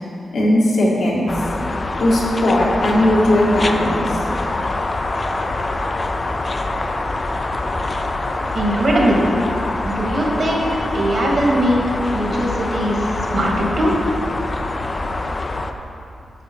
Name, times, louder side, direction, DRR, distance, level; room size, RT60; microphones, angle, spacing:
voice 1, 0.3-1.3 2.0-4.0, left 1 dB, 75° left, -4 dB, 1.7 m, -17 dB
sound 1, 1.3-15.7, left 2 dB, 30° left, 0.4 m, -24 dB
voice 2, 8.5-9.3 9.9-11.8 12.1-13.9, right 1 dB, 50° right, -2 dB, 1.7 m, -20 dB
9.0 x 6.3 x 4.4 m, 2.7 s
wide cardioid pair, 115°, 0 cm